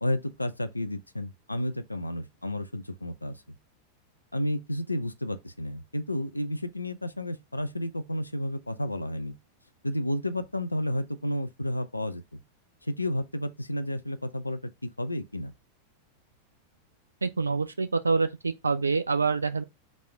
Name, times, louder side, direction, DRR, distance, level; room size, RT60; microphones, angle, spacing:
voice 1, 0.0-3.4 4.3-9.3 9.8-12.4 12.8-14.6 15.0-15.5, left 1 dB, 85° left, 0.4 m, -31 dB
voice 2, 17.2-19.6, right 4 dB, 75° right, 0.3 m, -26 dB
4.0 x 2.4 x 4.4 m
figure-of-eight pair, 90°, 0 cm